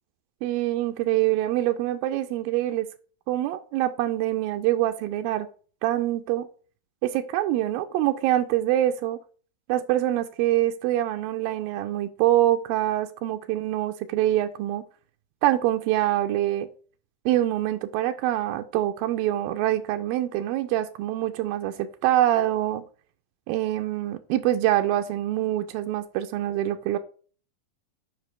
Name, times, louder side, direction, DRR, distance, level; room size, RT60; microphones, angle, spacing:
voice 1, 0.4-2.9 3.3-5.5 5.8-6.5 7.0-9.2 9.7-14.8 15.4-16.7 17.3-22.8 23.5-27.0, right 13 dB, 90° right, 7 dB, 2.4 m, -25 dB
10.5 x 5.0 x 3.3 m, 0.41 s
omnidirectional pair, 4.1 m